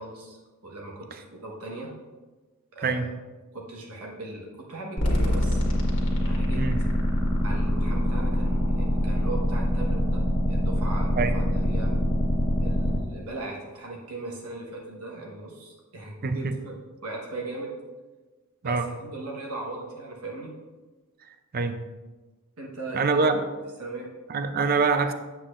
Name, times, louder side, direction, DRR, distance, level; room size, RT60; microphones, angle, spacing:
voice 1, 0.0-1.9 2.7-3.1 3.5-5.8 6.2-6.6 7.4-11.9 12.6-16.7 17.0-17.8 18.6-20.5 22.6-23.4 23.8-24.1, right 2 dB, 80° right, -2 dB, 1.2 m, -38 dB
sound 1, 5.0-13.0, equal, 55° left, 1.6 m, -24 dB
voice 2, 16.2-16.5 18.6-18.9 21.5-21.8 22.9-23.4 24.3-25.1, right 4 dB, 40° right, 9 dB, 0.5 m, -24 dB
8.4 x 7.4 x 2.5 m, 1.3 s
head